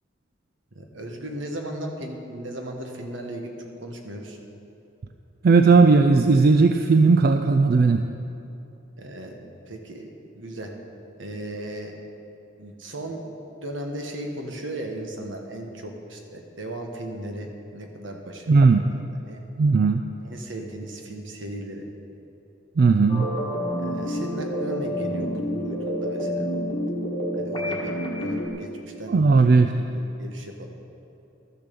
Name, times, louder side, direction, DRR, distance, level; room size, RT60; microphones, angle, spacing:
voice 1, 0.7-3.5 3.8-4.4 9.0-9.4 9.7-10.7 11.2-11.9 12.6-18.5 18.9-19.5 20.2-21.8 23.8-26.5 27.4-28.7 29.0-30.7, right 1 dB, 75° right, 3 dB, 1.4 m, -36 dB
voice 2, 5.4-8.0 18.5-18.9 19.6-20.0 22.8-23.3 29.1-29.7, right 4 dB, 50° right, 7 dB, 0.3 m, -17 dB
sound 1, 23.1-28.5, equal, 25° left, 1.5 m, -28 dB
12.5 x 7.0 x 6.9 m, 2.8 s
head